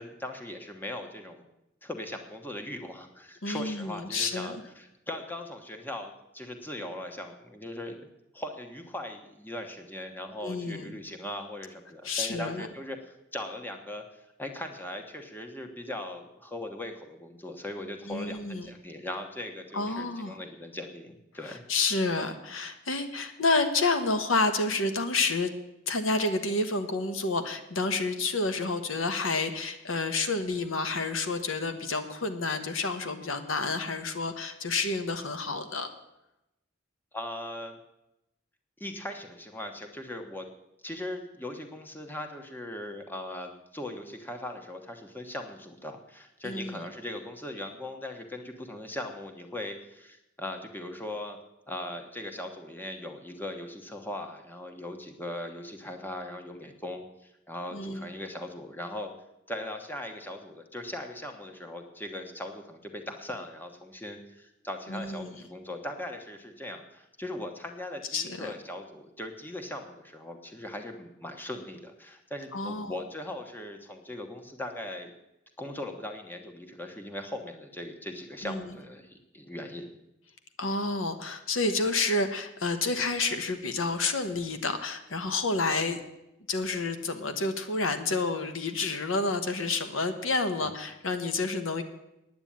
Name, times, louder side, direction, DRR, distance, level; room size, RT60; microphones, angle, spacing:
voice 1, 0.0-1.5 1.8-13.0 13.3-14.0 14.4-21.6 37.1-37.8 38.8-40.5 40.8-51.4 51.7-59.1 59.5-75.1 75.6-79.9 90.6-90.7, left 1 dB, 10° left, 4 dB, 1.2 m, -39 dB
voice 2, 3.4-4.6 10.4-10.9 12.0-12.6 18.1-18.7 19.7-20.4 21.5-25.5 25.9-35.9 46.4-46.8 57.7-58.1 64.9-65.3 68.1-68.5 72.5-72.9 78.4-78.7 80.6-86.0 86.5-91.8, left 3 dB, 90° left, 8 dB, 1.2 m, -29 dB
9.7 x 8.9 x 8.9 m, 0.90 s
head